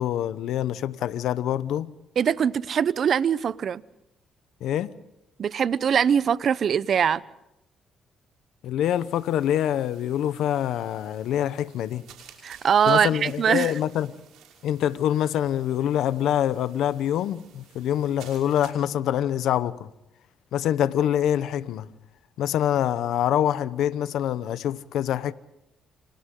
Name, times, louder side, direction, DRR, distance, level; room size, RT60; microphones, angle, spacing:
voice 1, 0.0-1.9 4.6-4.9 8.6-12.0 12.9-14.2 14.6-19.9 20.5-21.9 22.4-25.3, left 11 dB, 80° left, 0.9 m, -25 dB
voice 2, 2.2-3.8 5.4-7.2 12.4-13.7, right 8 dB, 55° right, 0.7 m, -22 dB
sound 1, 8.8-18.7, right 8 dB, 90° right, 5.8 m, -53 dB
29.0 x 27.0 x 3.9 m
cardioid pair, 90°, 0 cm